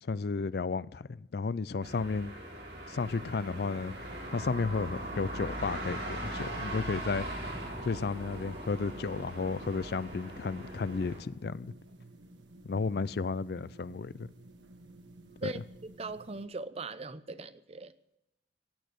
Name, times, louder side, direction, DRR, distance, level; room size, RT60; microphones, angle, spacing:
voice 1, 0.0-2.3 2.9-3.9 4.3-7.3 7.8-11.7 12.6-14.3 15.4-15.5, left 4 dB, 60° left, 0.4 m, -33 dB
sound 1, 1.8-11.2, right 1 dB, 60° right, 4.0 m, -40 dB
sound 2, 3.0-16.5, right 2 dB, 85° right, 1.8 m, -53 dB
voice 2, 15.4-17.9, right 3 dB, 35° right, 0.7 m, -40 dB
16.5 x 8.9 x 8.0 m
head